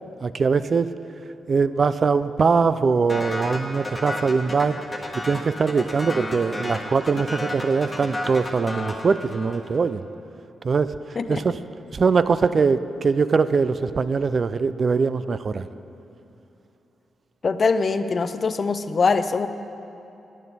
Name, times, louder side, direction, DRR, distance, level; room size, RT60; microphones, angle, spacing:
voice 1, 0.2-0.9 1.5-4.8 5.2-10.1 10.6-11.0 11.3-11.6 11.9-15.7, right 5 dB, 50° right, 13 dB, 0.3 m, -22 dB
sound 1, 3.1-9.8, left 1 dB, 20° left, 1.3 m, -32 dB
voice 2, 17.4-19.5, left 4 dB, 50° left, 11 dB, 0.4 m, -22 dB
10.5 x 8.9 x 4.1 m, 2.9 s
cardioid pair, 60°, 0 cm